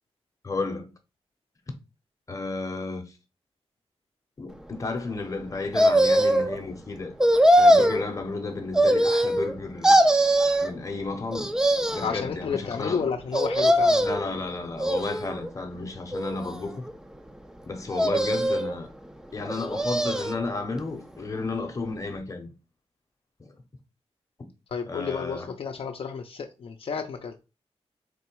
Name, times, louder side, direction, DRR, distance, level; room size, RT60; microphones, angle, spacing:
voice 1, 0.4-0.9 2.3-3.0 4.4-7.1 7.6-10.0 10.6-11.5 11.8-13.1 14.0-16.8 17.7-18.9 19.3-22.5 23.4-23.5 24.9-25.5, left 3 dB, 30° left, 0.8 m, -32 dB
sound 1, 5.7-6.6 7.2-8.0 8.7-9.5 9.8-10.7 11.3-12.1 13.3-14.3 14.8-15.5 16.1-16.9 17.9-18.7 19.5-20.4 20.8-20.9, right 1 dB, 5° right, 0.4 m, -21 dB
voice 2, 12.0-14.1 24.7-27.3, left 6 dB, 60° left, 0.5 m, -31 dB
3.7 x 3.1 x 4.5 m
wide cardioid pair, 150°, 11 cm